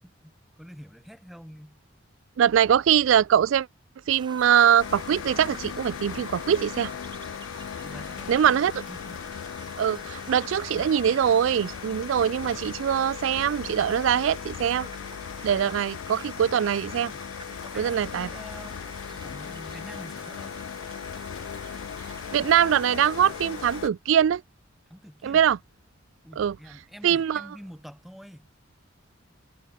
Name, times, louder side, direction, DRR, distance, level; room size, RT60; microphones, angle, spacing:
voice 1, 0.0-1.8 7.8-8.6 8.9-9.3 16.3-16.4 17.1-18.9 19.1-20.5 24.9-25.4 26.2-28.5, equal, ahead, 3.6 m, -47 dB
voice 2, 2.4-3.7 4.1-6.9 8.3-8.7 9.8-14.9 15.4-17.1 17.8-18.3 22.3-24.4 25.2-25.6 26.4-26.5 27.0-27.4, right 9 dB, 75° right, 0.3 m, -22 dB
sound 1, 4.1-23.8, right 5 dB, 25° right, 0.7 m, -47 dB
sound 2, 4.8-23.9, left 8 dB, 80° left, 0.4 m, -38 dB
head